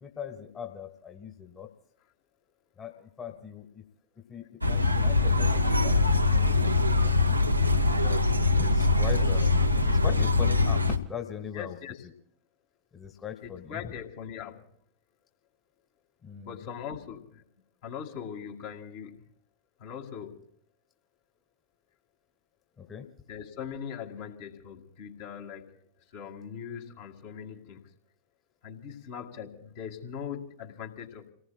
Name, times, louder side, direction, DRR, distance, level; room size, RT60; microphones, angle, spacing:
voice 1, 0.0-1.7 2.8-3.8 4.2-7.2 7.9-11.8 12.9-13.9 16.2-16.6 22.8-23.1, left 8 dB, 25° left, 5 dB, 1.6 m, -40 dB
sound 1, 4.6-11.0, left 3 dB, 85° right, 1.0 m, -23 dB
voice 2, 11.5-12.0 13.4-14.6 16.4-17.4 17.8-19.1 19.8-20.4 23.3-25.8 26.1-27.8 28.6-31.3, left 8 dB, 50° left, 2 dB, 2.2 m, -40 dB
30.0 x 18.5 x 2.3 m, 0.67 s
figure-of-eight pair, 90°, 0 cm